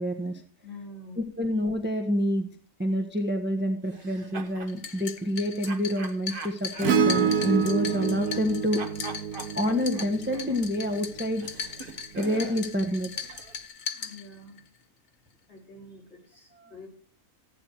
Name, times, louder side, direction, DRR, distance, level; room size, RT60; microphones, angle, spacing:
voice 1, 0.0-0.4 1.4-2.5 2.8-8.8 9.5-11.8 12.1-13.3, equal, 10° right, 4 dB, 1.2 m, -28 dB
voice 2, 0.6-1.2 13.9-14.6 15.5-16.9, left 2 dB, 45° left, -2 dB, 5.5 m, -46 dB
sound 1, 3.9-4.8 5.7-8.5 8.8-12.7, right 4 dB, 40° right, 1.4 m, -43 dB
sound 2, 4.7-14.7, left 6 dB, 90° left, 1.7 m, -39 dB
Acoustic guitar / Strum, 6.8-11.4 13.3-13.4, right 6 dB, 85° right, 1.5 m, -28 dB
15.0 x 9.6 x 4.8 m, 0.41 s
omnidirectional pair, 1.6 m